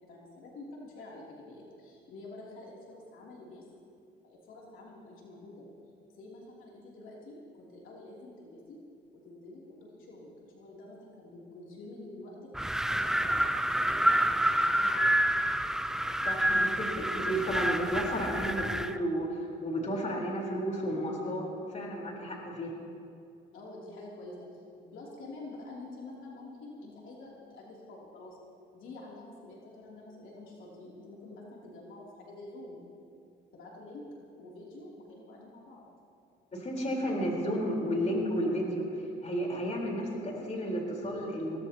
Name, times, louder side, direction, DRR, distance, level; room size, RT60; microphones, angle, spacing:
voice 1, 0.1-3.7 4.2-5.7 6.1-8.8 9.1-12.4 12.9-13.4 13.8-15.4 23.5-28.4 28.7-32.8 33.5-34.0 34.3-35.8, left 2 dB, 80° left, -4 dB, 3.2 m, -48 dB
Wind, 12.5-19.0, right 1 dB, 5° right, 0.5 m, -28 dB
voice 2, 16.2-21.4 21.7-22.7 36.5-38.9 39.2-41.6, equal, 35° left, -2 dB, 4.3 m, -32 dB
23.0 x 17.5 x 3.0 m, 2.5 s
cardioid pair, 90°, 20 cm